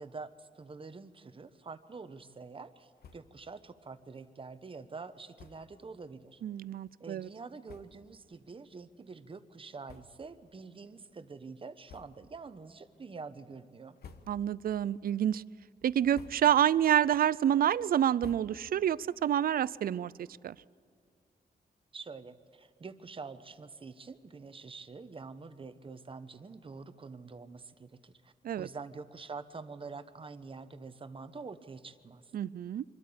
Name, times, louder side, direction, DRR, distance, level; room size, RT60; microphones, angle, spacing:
voice 1, 0.0-6.4 7.0-14.0 21.9-32.3, right 4 dB, 35° right, 11 dB, 1.0 m, -46 dB
sound 1, 3.0-3.5 3.8-3.9 4.2-4.3 5.3-5.8 6.5-6.6 7.3-7.4 7.6-8.2 8.7-8.9 9.8-10.5 10.8-11.0 11.8-12.4 12.9-13.3 13.8-14.7 15.0-15.5 15.9-16.7 17.1-18.9, left 5 dB, 85° left, 1.3 m, -55 dB
voice 2, 6.4-7.3 14.3-15.4 15.8-20.6 28.4-28.7 32.3-32.8, right 10 dB, 70° right, 20 dB, 0.4 m, -28 dB
25.0 x 13.0 x 8.6 m, 2.4 s
wide cardioid pair, 110°, 16 cm